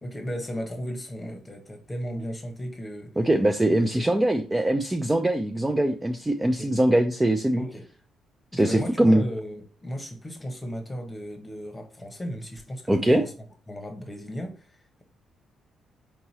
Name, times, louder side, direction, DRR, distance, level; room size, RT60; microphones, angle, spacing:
voice 1, 0.0-3.1 3.6-4.1 6.4-6.7 7.6-7.8 8.5-13.3 13.7-15.0, equal, 15° left, 4 dB, 1.1 m, -35 dB
voice 2, 3.2-7.6 8.5-9.2 12.9-13.2, right 1 dB, 15° right, 4 dB, 0.5 m, -22 dB
4.6 x 2.9 x 2.8 m, 0.38 s
cardioid pair, 90°, 0 cm